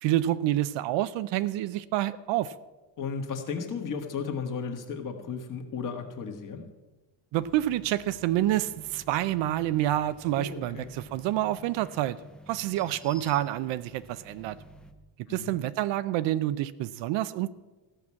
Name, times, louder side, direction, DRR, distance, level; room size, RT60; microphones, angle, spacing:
voice 1, 0.0-2.5 7.3-12.2 12.5-14.6 15.3-17.5, right 14 dB, 65° right, 15 dB, 0.6 m, -28 dB
voice 2, 3.0-6.6 10.3-10.9 15.3-15.5, left 5 dB, 40° left, 4 dB, 1.7 m, -34 dB
sound 1, 7.3-14.9, equal, ahead, 0.3 m, -50 dB
14.5 x 6.1 x 8.4 m, 1.2 s
cardioid pair, 160°, 49 cm